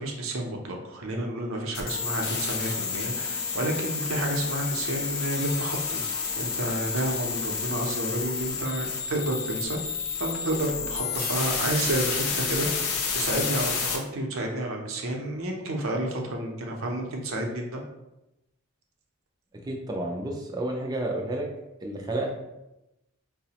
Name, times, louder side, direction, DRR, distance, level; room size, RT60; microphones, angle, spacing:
voice 1, 0.0-6.0 6.4-9.8 10.2-17.8, right 1 dB, 60° right, 1 dB, 0.6 m, -30 dB
sound 1, 1.7-14.0, left 5 dB, 80° left, 0.5 m, -30 dB
voice 2, 19.6-21.5 21.8-22.3, right 1 dB, 15° right, 1 dB, 0.4 m, -30 dB
4.7 x 2.0 x 2.8 m, 0.94 s
head